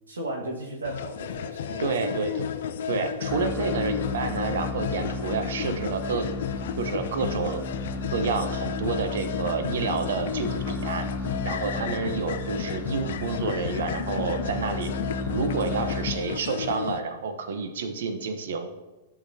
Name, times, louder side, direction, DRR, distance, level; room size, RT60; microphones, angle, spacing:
voice 1, 0.1-2.2, right 1 dB, 90° right, -2 dB, 1.6 m, -35 dB
sound 1, 0.8-17.0, left 8 dB, 65° left, 0.4 m, -33 dB
voice 2, 1.8-2.5 2.9-6.3 6.8-7.6 8.1-11.1 11.4-14.9 15.3-18.7, right 4 dB, 70° right, 8 dB, 0.8 m, -29 dB
sound 2, 3.2-16.7, left 2 dB, 10° left, 0.5 m, -34 dB
sound 3, 4.0-16.6, left 4 dB, 85° left, 0.9 m, -44 dB
11.0 x 6.0 x 2.7 m, 1.1 s
hypercardioid pair, 110°, 0 cm